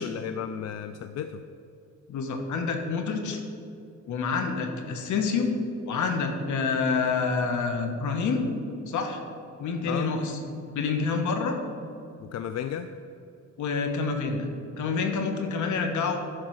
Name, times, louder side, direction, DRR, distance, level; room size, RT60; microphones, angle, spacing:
voice 1, 0.0-1.4 9.9-10.1 12.2-12.9, left 9 dB, 60° left, 9 dB, 0.5 m, -33 dB
voice 2, 2.1-3.4 4.1-5.5 5.9-8.4 8.9-9.2 9.6-10.3 10.7-11.6 13.6-14.5 14.8-16.2, left 4 dB, 75° left, 4 dB, 1.4 m, -27 dB
11.0 x 4.7 x 6.4 m, 2.6 s
cardioid pair, 90°, 30 cm